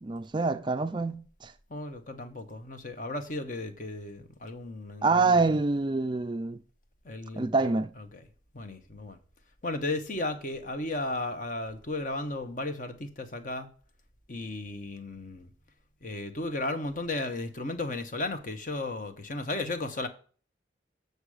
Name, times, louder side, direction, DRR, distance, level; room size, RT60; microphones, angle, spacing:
voice 1, 0.0-1.5 5.0-6.6 7.4-7.9, right 3 dB, 25° right, 0.3 m, -26 dB
voice 2, 1.7-5.5 7.0-8.2 8.5-9.2 9.6-13.7 14.3-15.5 16.0-20.1, left 2 dB, 45° left, 1.0 m, -35 dB
8.0 x 6.7 x 4.9 m
head